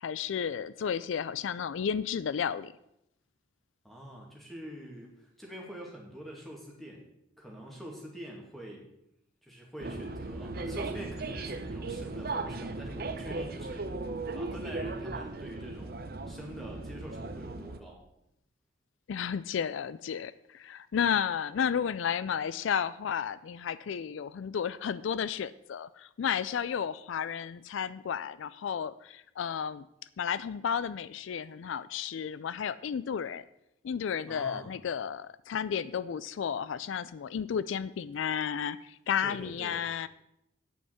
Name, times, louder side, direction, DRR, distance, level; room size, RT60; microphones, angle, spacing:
voice 1, 0.0-2.7 19.1-29.9 30.2-33.4 33.8-40.1, left 7 dB, 75° left, 16 dB, 0.4 m, -32 dB
voice 2, 3.8-7.0 7.4-8.9 9.4-13.9 14.3-16.0 16.3-18.0 34.3-34.7 39.2-39.8, equal, ahead, -2 dB, 2.2 m, -45 dB
sound 1, 9.8-17.8, right 3 dB, 50° right, 0.7 m, -37 dB
9.3 x 5.5 x 8.0 m, 0.82 s
head